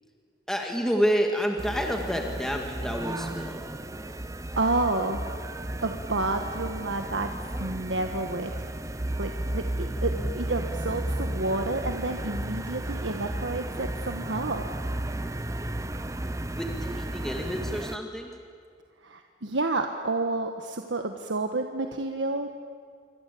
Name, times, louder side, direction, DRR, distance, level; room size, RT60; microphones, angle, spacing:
voice 1, 0.5-3.7 16.5-18.3, equal, 5° left, 2 dB, 2.1 m, -29 dB
sound 1, 1.6-18.0, right 1 dB, 15° right, 0.8 m, -33 dB
voice 2, 4.6-5.3 5.8-7.3 7.6-8.7 9.2-14.7 19.0-22.5, right 2 dB, 85° right, 5 dB, 1.4 m, -30 dB
28.0 x 24.0 x 8.5 m, 2.1 s
head